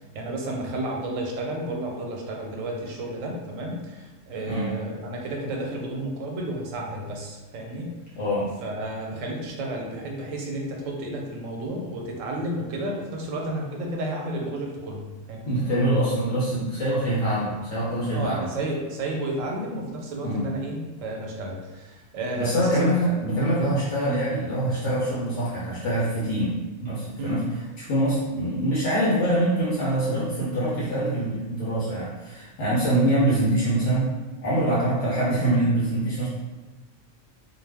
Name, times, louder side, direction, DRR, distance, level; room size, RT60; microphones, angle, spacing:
voice 1, 0.1-7.9 8.6-15.6 18.1-23.2 23.6-23.7 27.2-27.5, right 1 dB, 85° right, 0 dB, 1.0 m, -32 dB
voice 2, 8.2-8.5 15.4-18.4 20.2-20.4 22.4-27.4 27.8-34.1 34.4-36.3, right 1 dB, 70° left, -8 dB, 1.0 m, -24 dB
2.5 x 2.2 x 3.3 m, 1.2 s
omnidirectional pair, 1.3 m